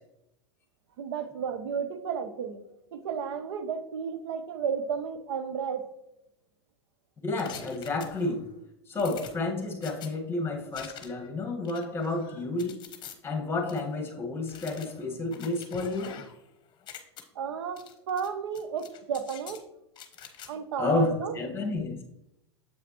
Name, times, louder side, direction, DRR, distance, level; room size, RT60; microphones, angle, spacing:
voice 1, 1.0-2.6 2.9-5.8 17.4-19.6 20.5-21.3, right 7 dB, 65° right, 10 dB, 0.8 m, -33 dB
voice 2, 7.2-8.4 8.9-12.8 13.2-16.2 20.8-22.0, left 3 dB, 15° left, 3 dB, 1.5 m, -30 dB
sound 1, 7.4-8.5 9.0-10.1 10.7-11.3 11.6-13.1 13.7-13.8 14.5-16.5 16.7-17.2 17.8-18.3 18.5-19.6 19.9-20.5, left 8 dB, 30° left, 1.0 m, -46 dB
7.7 x 5.8 x 3.0 m, 0.85 s
hypercardioid pair, 100°, 14 cm